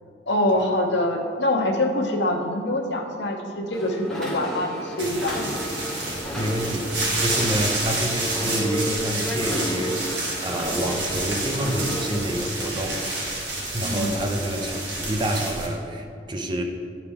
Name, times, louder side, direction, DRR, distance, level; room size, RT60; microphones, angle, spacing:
voice 1, 0.3-5.5 8.5-8.7 13.8-14.1, left 1 dB, 75° left, 2 dB, 0.9 m, -25 dB
sound 1, 3.7-12.5, equal, 5° left, 1.0 m, -32 dB
sound 2, 5.0-15.7, right 2 dB, 80° right, 1.9 m, -29 dB
voice 2, 6.3-10.1 10.4-13.1 13.7-16.6, equal, 25° right, 3 dB, 0.6 m, -28 dB
11.0 x 4.9 x 3.5 m, 2.3 s
head